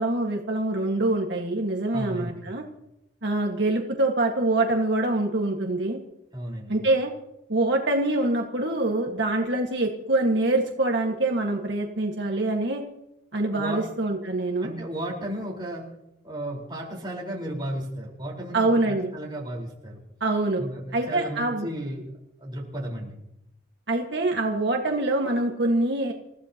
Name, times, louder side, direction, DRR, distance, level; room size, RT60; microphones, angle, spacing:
voice 1, 0.0-2.6 3.2-6.0 6.7-7.1 7.5-12.8 13.3-14.7 18.5-19.1 20.2-20.6 20.9-21.7 23.9-26.1, right 2 dB, 65° right, 1 dB, 1.7 m, -25 dB
voice 2, 1.9-2.5 6.3-6.8 13.5-14.0 14.6-15.9 16.2-20.0 20.6-22.1 22.4-23.2, right 1 dB, 25° right, -3 dB, 4.5 m, -34 dB
28.5 x 15.5 x 3.0 m, 0.83 s
head